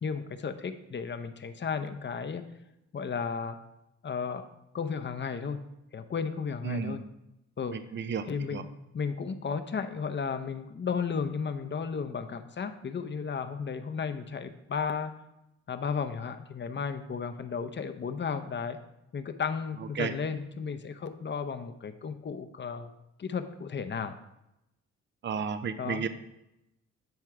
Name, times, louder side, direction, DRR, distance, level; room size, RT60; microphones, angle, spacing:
voice 1, 0.0-2.4 2.9-3.6 4.0-4.5 4.7-5.6 5.9-7.0 7.6-7.8 8.3-8.7 8.9-15.1 15.7-18.8 19.1-22.9 23.2-24.2 25.8-26.0, left 6 dB, 40° left, 9 dB, 0.7 m, -34 dB
voice 2, 6.6-7.0 7.7-8.3 8.5-8.6 20.0-20.1 25.2-26.1, right 6 dB, 40° right, 11 dB, 0.6 m, -32 dB
9.5 x 4.4 x 4.8 m, 0.89 s
cardioid pair, 90°, 29 cm